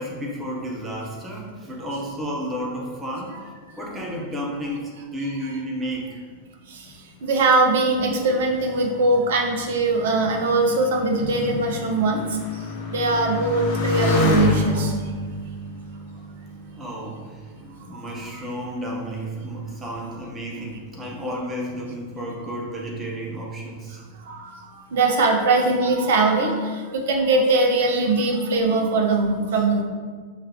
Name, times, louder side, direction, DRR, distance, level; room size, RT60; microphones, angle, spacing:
voice 1, 0.0-3.4 3.8-6.2 16.8-17.4 17.9-24.0, equal, 15° right, -3 dB, 0.8 m, -32 dB
voice 2, 7.2-12.2 12.9-14.9 17.9-18.0 18.3-18.4 24.3-24.6 24.9-29.8, right 2 dB, 55° right, 2 dB, 0.7 m, -21 dB
Motorcycle, 8.3-17.3 18.0-18.6, left 2 dB, 45° left, 0.8 m, -28 dB
4.9 x 3.6 x 2.9 m, 1.5 s
figure-of-eight pair, 90°, 0 cm